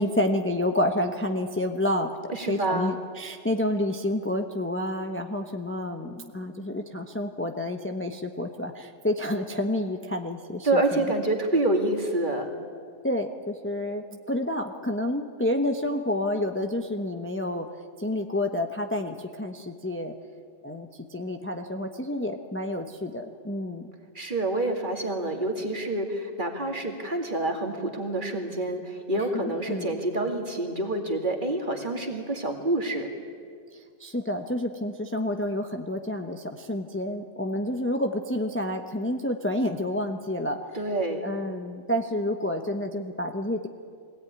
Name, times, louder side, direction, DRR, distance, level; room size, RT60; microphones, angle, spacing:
voice 1, 0.0-2.1 2.5-11.1 13.0-17.7 18.0-20.1 20.6-23.9 29.7-30.0 34.0-40.6 41.2-43.7, left 1 dB, 10° left, 5 dB, 0.9 m, -29 dB
voice 2, 2.3-2.9 10.6-12.5 24.1-33.1 40.7-41.2, right 2 dB, 40° right, 2 dB, 2.5 m, -27 dB
22.0 x 17.0 x 9.7 m, 2.1 s
omnidirectional pair, 1.3 m